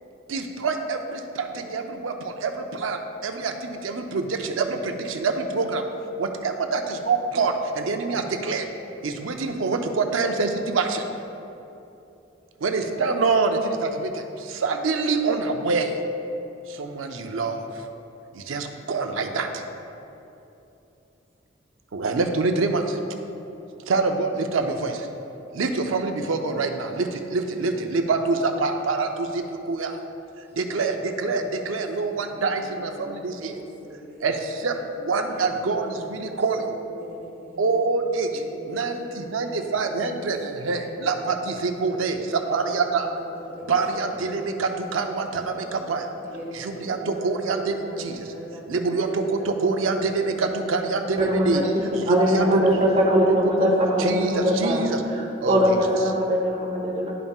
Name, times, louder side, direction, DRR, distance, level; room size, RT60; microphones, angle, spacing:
voice 1, 0.3-5.8 6.2-8.7 9.0-11.1 12.6-16.0 16.7-17.7 18.3-19.6 21.9-23.0 23.9-25.1 25.5-30.0 30.6-33.6 34.2-36.7 37.6-38.4 38.7-43.1 43.7-46.1 46.6-48.2 48.7-51.6 52.1-53.7 54.0-55.0 55.4-55.8, right 4 dB, 85° right, 5 dB, 0.6 m, -26 dB
voice 2, 27.5-28.2 30.7-31.8 32.2-34.8 35.2-37.9 38.3-41.5 41.8-45.8 46.2-49.7 50.2-53.2, right 1 dB, 15° right, -6 dB, 1.5 m, -41 dB
voice 3, 51.2-51.7 52.0-54.8 55.1-57.1, equal, 35° right, -4 dB, 1.1 m, -22 dB
12.0 x 5.4 x 2.4 m, 2.9 s
head